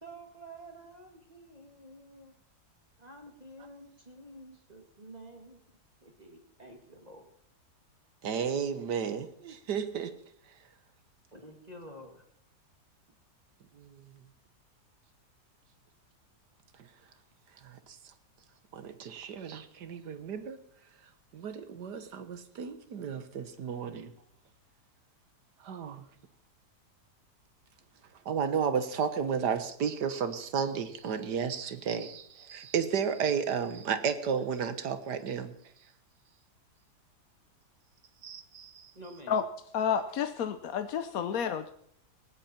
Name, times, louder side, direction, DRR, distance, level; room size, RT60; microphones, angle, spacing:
voice 1, 0.0-2.3 3.0-7.3 11.3-12.2 38.9-39.4 41.3-41.4, right 1 dB, 25° right, 2.2 m, -50 dB
voice 2, 8.2-10.1 13.7-14.2 16.8-16.9 17.6-18.1 18.7-20.6 21.3-24.1 25.6-26.1 28.3-35.5 38.2-38.9, right 7 dB, 85° right, 1.9 m, -33 dB
voice 3, 39.7-41.7, left 7 dB, 65° left, 1.2 m, -30 dB
19.0 x 17.0 x 4.4 m
omnidirectional pair, 1.7 m